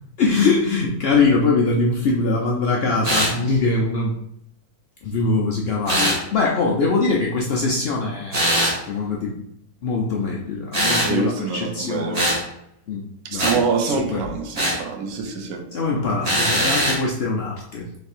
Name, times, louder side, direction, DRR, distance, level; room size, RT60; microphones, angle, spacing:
voice 1, 0.2-4.1 5.0-8.5 8.9-9.4 9.8-12.2 12.9-13.0 13.3-13.6 13.9-14.2 15.7-17.9, left 3 dB, 75° left, -2 dB, 0.5 m, -22 dB
sound 1, 3.0-3.4 5.9-6.2 8.3-8.8 10.7-11.1 12.1-12.4 13.4-13.6 14.5-14.8 16.2-17.0, right 1 dB, 30° right, 1.0 m, -21 dB
voice 2, 11.1-12.3 13.3-15.6, right 5 dB, 65° right, 1 dB, 1.0 m, -25 dB
3.3 x 3.2 x 4.3 m, 0.75 s
omnidirectional pair, 1.7 m